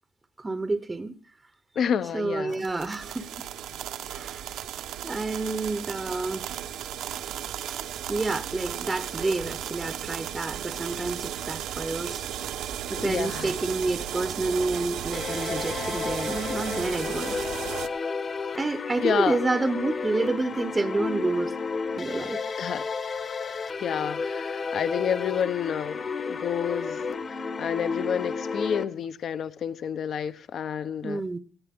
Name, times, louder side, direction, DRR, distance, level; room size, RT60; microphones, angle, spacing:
voice 1, 0.4-1.2 2.1-3.3 4.1-4.5 5.0-6.4 8.1-12.2 12.9-17.4 18.5-21.5 22.0-22.4 31.0-31.4, right 3 dB, 15° right, 0.8 m, -29 dB
voice 2, 1.7-2.6 13.0-13.6 19.0-19.4 22.6-22.9 23.8-31.2, left 8 dB, 50° left, 0.9 m, -29 dB
sound 1, 2.5-17.9, right 10 dB, 75° right, 1.0 m, -35 dB
sound 2, 15.1-28.8, left 5 dB, 35° left, 1.3 m, -32 dB
18.0 x 14.5 x 3.6 m
cardioid pair, 130°, 0 cm